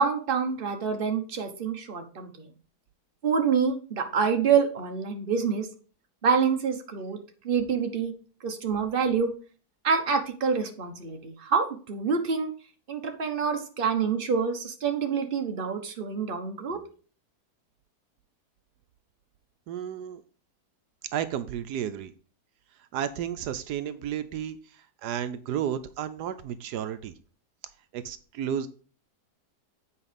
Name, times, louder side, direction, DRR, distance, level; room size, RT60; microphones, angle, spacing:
voice 1, 0.0-2.5 3.2-5.7 6.2-7.2 7.4-8.1 8.4-9.3 9.8-12.5 12.9-16.8, right 6 dB, 35° right, 4 dB, 1.3 m, -26 dB
voice 2, 19.7-20.2 21.1-22.1 22.8-27.1 27.9-28.7, right 9 dB, 80° right, 11 dB, 1.2 m, -32 dB
8.4 x 4.8 x 5.1 m, 0.39 s
omnidirectional pair, 1.7 m